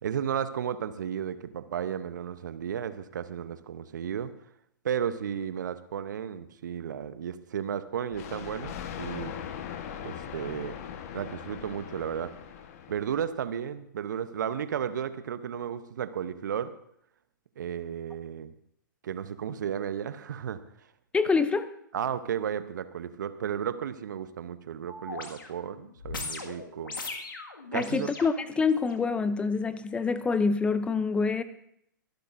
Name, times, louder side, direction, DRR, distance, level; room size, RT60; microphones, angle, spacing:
voice 1, 0.0-4.3 4.8-9.3 10.0-10.8 11.1-12.3 12.9-16.7 17.6-18.5 19.0-20.6 21.9-26.9 27.7-28.1, right 8 dB, 60° right, 13 dB, 0.8 m, -33 dB
Thunder, 8.1-13.5, left 9 dB, 45° left, 1.2 m, -40 dB
voice 2, 21.1-21.7 27.7-31.4, left 4 dB, 10° left, 14 dB, 0.5 m, -26 dB
sound 1, 24.9-29.0 29.6-29.8, left 3 dB, 75° left, 1.9 m, -40 dB
25.0 x 12.0 x 2.6 m, 0.71 s
figure-of-eight pair, 115°, 11 cm